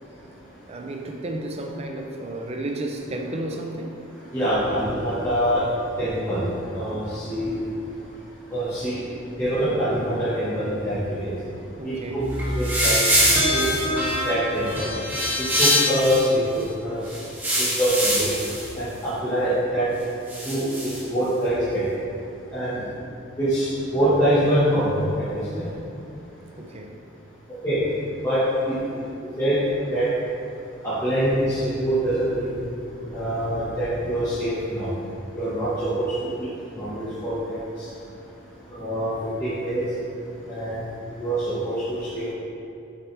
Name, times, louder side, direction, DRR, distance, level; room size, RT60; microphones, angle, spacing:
voice 1, 0.6-4.0 11.8-12.2 26.6-27.0, right 1 dB, 30° right, 2 dB, 0.6 m, -32 dB
voice 2, 4.3-5.6 6.0-7.6 8.5-9.0 9.4-11.3 11.8-11.9 12.5-13.0 13.5-13.9 14.3-14.9 15.6-17.0 17.6-18.3 18.7-19.9 20.4-21.6 22.5-22.8 23.4-23.7 23.9-25.0 25.5-25.7 27.6-27.8 28.2-28.4 28.6-28.8 29.4-29.6 29.9-30.1 30.8-32.5 33.1-34.9 35.3-36.5 36.8-37.6 38.7-39.1 39.4-39.8 40.5-40.8 41.2-41.4 41.6-42.3, right 1 dB, 15° left, -14 dB, 1.5 m, -24 dB
sound 1, 12.2-16.3 17.1-18.7 20.3-21.0, equal, 10° right, 1.2 m, -23 dB
7.6 x 6.5 x 3.4 m, 2.7 s
head